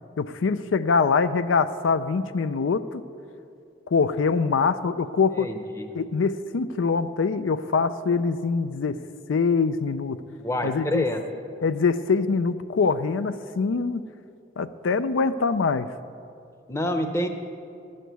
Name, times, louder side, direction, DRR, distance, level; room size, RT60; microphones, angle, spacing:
voice 1, 0.2-3.0 3.9-5.5 5.9-9.0 9.3-10.2 10.6-11.1 11.6-14.0 14.6-15.9, left 5 dB, 90° left, 13 dB, 0.4 m, -24 dB
voice 2, 5.3-5.9 10.4-11.2 16.7-17.3, left 1 dB, 15° left, 6 dB, 0.7 m, -27 dB
12.0 x 6.5 x 9.2 m, 2.5 s
head